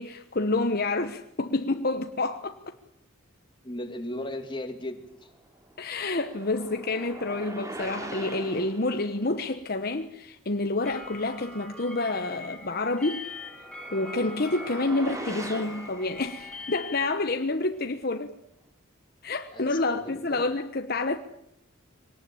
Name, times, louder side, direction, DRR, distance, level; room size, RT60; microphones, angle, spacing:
voice 1, 0.0-2.8 5.8-13.2 13.9-18.3 19.2-21.2, left 2 dB, 50° left, 1.1 m, -28 dB
voice 2, 3.6-5.3 19.5-20.4, left 1 dB, 25° left, 2.5 m, -36 dB
sound 1, 5.5-9.1 13.0-16.7, right 1 dB, 15° right, 2.7 m, -41 dB
sound 2, 10.8-17.1, left 3 dB, 5° left, 6.6 m, -42 dB
24.0 x 19.0 x 8.7 m
head